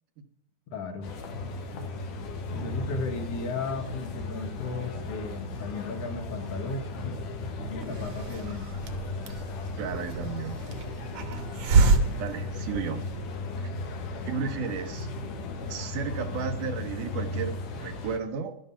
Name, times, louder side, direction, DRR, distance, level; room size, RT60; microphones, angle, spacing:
voice 1, 0.7-1.1 2.5-7.2 7.6-8.7 14.2-14.4, left 4 dB, 55° left, 6 dB, 2.1 m, -35 dB
sound 1, 1.0-18.2, left 2 dB, 85° left, 3.1 m, -36 dB
Hiss, 7.8-13.3, right 3 dB, 60° right, 2.1 m, -28 dB
voice 2, 9.8-10.6 12.2-13.1 13.6-13.7 14.3-15.1 15.7-18.6, right 6 dB, 85° right, 8 dB, 2.7 m, -33 dB
12.0 x 11.5 x 5.7 m, 0.74 s
omnidirectional pair, 3.5 m